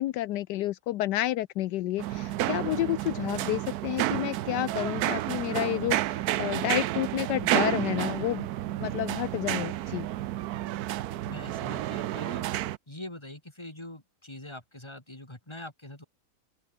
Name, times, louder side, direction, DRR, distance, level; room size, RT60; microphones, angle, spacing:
voice 1, 0.0-8.5 8.8-10.1, left 14 dB, 80° left, 1.2 m, -30 dB
sound 1, 2.0-12.8, right 14 dB, 70° right, 1.1 m, -30 dB
voice 2, 11.2-12.4 12.9-16.0, left 1 dB, 15° left, 3.8 m, -43 dB
open air
omnidirectional pair, 1.8 m